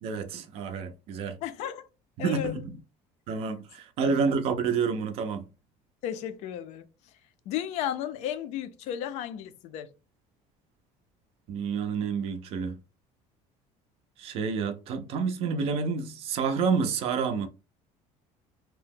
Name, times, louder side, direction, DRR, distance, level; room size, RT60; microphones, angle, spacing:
voice 1, 0.0-1.4 2.2-2.7 3.3-5.5 11.5-12.8 14.2-17.5, right 5 dB, 45° right, 0.4 m, -29 dB
voice 2, 1.4-1.8 2.2-2.5 4.0-4.2 6.0-6.9 7.5-9.9, left 10 dB, 55° left, 0.4 m, -34 dB
2.8 x 2.0 x 3.4 m
cardioid pair, 175°, 13 cm